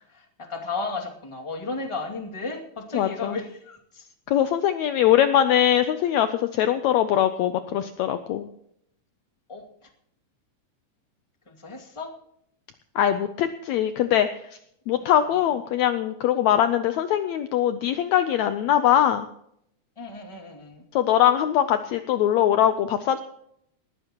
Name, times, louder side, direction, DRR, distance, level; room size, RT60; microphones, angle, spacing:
voice 1, 0.1-4.1 9.5-9.6 11.5-12.1 15.0-15.3 20.0-20.8, left 3 dB, 10° left, 1 dB, 1.8 m, -34 dB
voice 2, 2.9-3.4 4.3-8.5 13.0-14.3 14.9-19.3 20.9-23.2, left 11 dB, 75° left, 10 dB, 1.8 m, -22 dB
19.5 x 14.5 x 3.0 m, 0.72 s
omnidirectional pair, 3.6 m